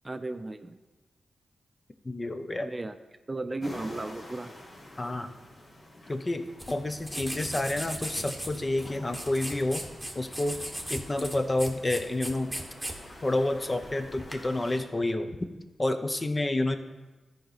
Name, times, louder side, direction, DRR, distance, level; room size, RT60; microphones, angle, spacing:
voice 1, 0.0-0.8 2.6-3.0 3.3-4.5, right 2 dB, 25° right, 9 dB, 0.5 m, -35 dB
voice 2, 2.0-2.7 5.0-5.4 6.1-9.8 10.1-10.6 10.9-12.5 13.2-15.3 15.8-16.8, left 2 dB, 30° left, 8 dB, 0.7 m, -29 dB
sound 1, 3.6-14.8, left 1 dB, 55° left, 2.1 m, -48 dB
sound 2, 6.6-14.5, equal, 5° right, 1.3 m, -38 dB
13.0 x 5.0 x 4.1 m, 1.2 s
cardioid pair, 70°, 0 cm